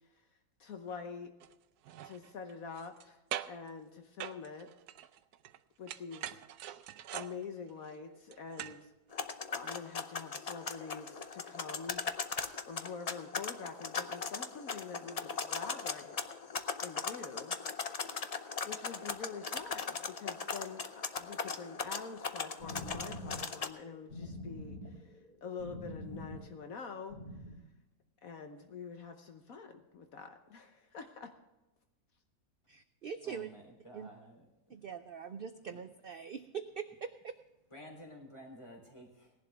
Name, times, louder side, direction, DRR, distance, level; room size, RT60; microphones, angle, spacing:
voice 1, 0.6-1.3 2.0-3.2 3.5-4.7 5.8-6.3 7.1-8.9 9.5-12.0 12.7-16.2 16.8-17.6 18.6-27.2 28.2-31.3, left 5 dB, 65° left, 6 dB, 1.4 m, -46 dB
sound 1, 1.4-1.5 1.8-3.1 3.3-3.7 4.2-5.6 5.9-8.9 9.2-9.3, right 11 dB, 85° right, 1.2 m, -43 dB
sound 2, 9.1-23.7, left 5 dB, 50° left, 0.4 m, -39 dB
sound 3, 22.4-27.6, left 1 dB, 25° right, 2.7 m, -45 dB
voice 2, 32.7-33.5 33.9-34.1 34.7-37.4, right 7 dB, 65° right, 9 dB, 0.5 m, -43 dB
voice 3, 33.2-34.8 35.7-35.8 37.7-39.3, equal, 20° left, 1 dB, 3.5 m, -52 dB
18.0 x 11.5 x 3.5 m, 0.98 s
omnidirectional pair, 1.6 m